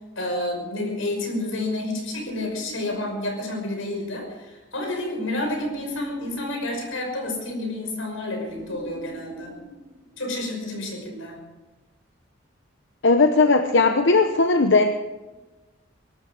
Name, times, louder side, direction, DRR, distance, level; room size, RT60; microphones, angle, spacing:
voice 1, 0.2-9.5 10.2-11.4, left 1 dB, 90° left, 2 dB, 5.6 m, -30 dB
sound 1, 2.1-3.8 5.4-7.5 8.5-10.6, equal, 50° right, 4.4 m, -44 dB
voice 2, 13.0-14.9, left 3 dB, 65° left, 7 dB, 0.9 m, -18 dB
22.5 x 13.0 x 4.9 m, 1.2 s
head